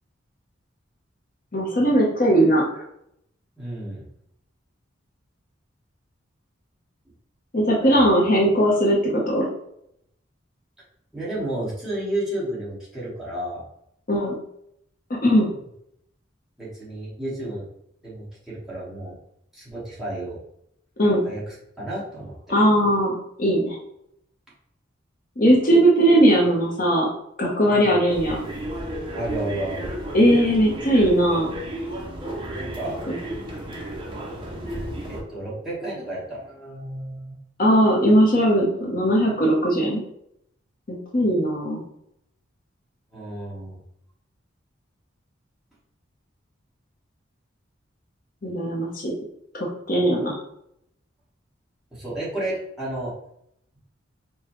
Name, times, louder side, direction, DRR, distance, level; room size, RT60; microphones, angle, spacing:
voice 1, 1.5-2.6 7.5-9.5 14.1-14.4 15.2-15.5 21.0-21.2 22.5-23.8 25.4-27.1 27.4-28.4 30.1-31.5 33.1-33.2 37.6-40.0 40.9-41.8 48.4-49.1 49.5-50.4, equal, 45° left, -3 dB, 0.7 m, -19 dB
voice 2, 3.6-4.0 7.8-8.1 11.1-13.6 15.5-15.6 16.6-17.7 18.0-19.1 19.5-20.4 21.2-22.4 27.7-27.9 29.1-29.9 32.6-33.0 35.1-37.4 43.1-43.8 51.9-53.2, right 1 dB, ahead, -9 dB, 1.2 m, -32 dB
sound 1, 28.1-35.2, right 1 dB, 25° right, 0.6 m, -33 dB
4.9 x 2.2 x 3.0 m, 0.75 s
head